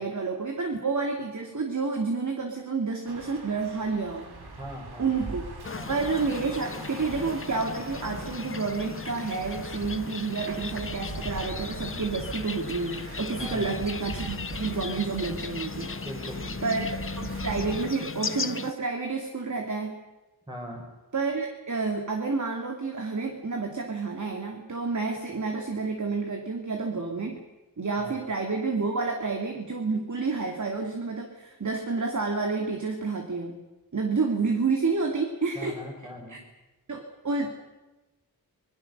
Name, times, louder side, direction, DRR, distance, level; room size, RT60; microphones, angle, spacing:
voice 1, 0.0-4.2 5.0-5.4 5.9-15.9 16.6-20.0 21.1-27.4 27.8-33.6 33.9-35.8 36.3-36.4 36.9-37.5, right 4 dB, 50° right, 3 dB, 2.7 m, -29 dB
sound 1, 3.0-17.8, right 3 dB, 85° right, 3.8 m, -41 dB
voice 2, 4.6-5.4 5.7-6.0 13.4-13.8 16.0-16.7 20.5-20.8 28.0-28.1 35.6-36.4, equal, 10° right, 1 dB, 5.3 m, -40 dB
sound 2, 5.6-18.7, left 4 dB, 35° left, 0.8 m, -37 dB
26.0 x 21.5 x 6.8 m, 1.1 s
wide cardioid pair, 105°, 37 cm